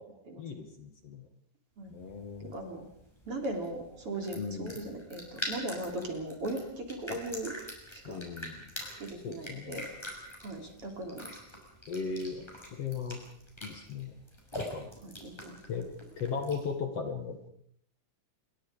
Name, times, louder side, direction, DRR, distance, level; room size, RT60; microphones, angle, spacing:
voice 1, 0.4-1.3 1.9-2.5 4.3-4.8 7.1-7.2 8.0-8.6 9.2-9.8 11.9-13.2 13.6-14.1 14.7-14.9 15.7-15.9 16.2-17.5, left 5 dB, 50° left, 5 dB, 2.7 m, -37 dB
sound 1, 1.9-16.8, equal, 5° left, 6.5 m, -45 dB
voice 2, 2.4-2.9 3.3-7.5 7.9-8.2 9.0-9.9 10.4-11.4 15.0-15.6, right 1 dB, 40° right, 3 dB, 4.1 m, -38 dB
28.0 x 22.5 x 5.2 m, 0.67 s
omnidirectional pair, 4.1 m